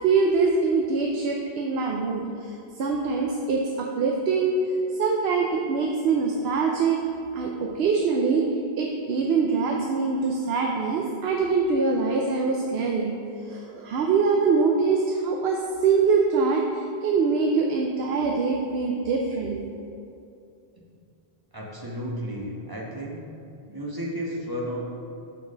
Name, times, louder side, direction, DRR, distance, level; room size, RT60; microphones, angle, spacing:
voice 1, 0.0-2.2 2.8-4.6 5.0-7.0 7.3-8.5 8.8-13.2 13.5-19.6, right 4 dB, 75° right, 1 dB, 0.8 m, -24 dB
voice 2, 21.5-23.2 23.7-24.8, equal, 20° right, -3 dB, 0.9 m, -33 dB
5.5 x 4.4 x 6.2 m, 2.6 s
omnidirectional pair, 1.1 m